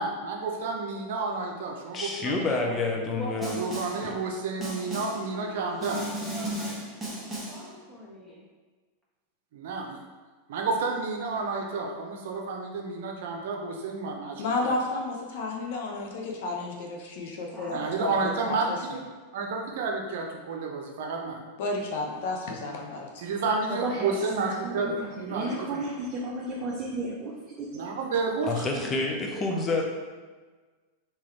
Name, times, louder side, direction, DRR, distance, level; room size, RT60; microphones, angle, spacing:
voice 1, 0.0-2.3 2.6-2.9 3.6-6.0 9.5-10.0 10.5-14.7 17.7-19.0 19.3-21.4 23.2-25.8 27.7-28.9, right 4 dB, 70° right, 1 dB, 0.7 m, -31 dB
voice 2, 1.9-3.6 4.0-4.4 28.4-29.8, left 3 dB, 30° left, 1 dB, 0.7 m, -29 dB
voice 3, 3.2-4.3 4.8-8.4 17.5-18.8, left 1 dB, 5° left, -7 dB, 1.3 m, -43 dB
Snare drum, 3.4-4.1 4.6-5.3 5.8-7.7, right 1 dB, 10° right, 0.9 m, -35 dB
voice 4, 14.4-19.0 21.6-23.3, left 2 dB, 70° left, 0 dB, 0.8 m, -32 dB
voice 5, 23.7-27.3 27.6-27.9 29.3-29.4, right 2 dB, 35° right, -4 dB, 0.7 m, -34 dB
3.7 x 3.0 x 3.2 m, 1.4 s
hypercardioid pair, 110°, 0 cm